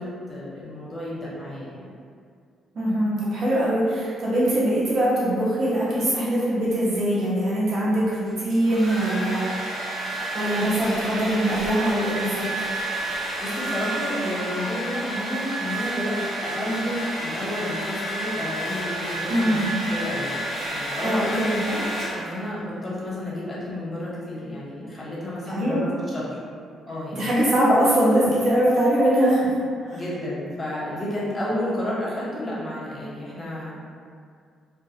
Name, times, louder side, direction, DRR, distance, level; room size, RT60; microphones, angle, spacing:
voice 1, 0.0-1.9 13.4-19.6 19.9-26.4 26.9-27.3 29.9-33.8, left 1 dB, 20° left, -7 dB, 0.8 m, -31 dB
voice 2, 2.7-9.7 10.3-12.5 19.3-19.7 21.0-21.6 25.5-25.8 27.1-29.6 29.8-30.0, right 1 dB, 55° right, -7 dB, 0.8 m, -22 dB
Domestic sounds home sounds, 8.3-22.5, right 1 dB, 90° right, 0.9 m, -30 dB
2.2 x 2.2 x 2.7 m, 2.2 s
cardioid pair, 90°, 0 cm